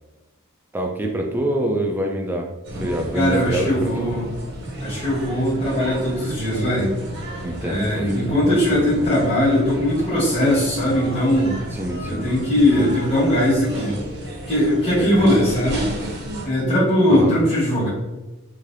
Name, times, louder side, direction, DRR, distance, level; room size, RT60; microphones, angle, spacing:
voice 1, 0.7-2.5 2.8-4.1 7.4-9.1 11.7-12.3 12.8-12.9 15.0-15.3 17.1-17.4, right 1 dB, 10° right, 1 dB, 0.3 m, -26 dB
sound 1, 2.6-16.5, right 1 dB, 50° right, 0.7 m, -33 dB
voice 2, 3.1-4.3 4.8-6.9 7.6-11.6 12.0-14.0 14.5-15.9 16.4-17.9, left 1 dB, 25° left, -10 dB, 1.3 m, -20 dB
3.3 x 2.7 x 2.5 m, 1.1 s
head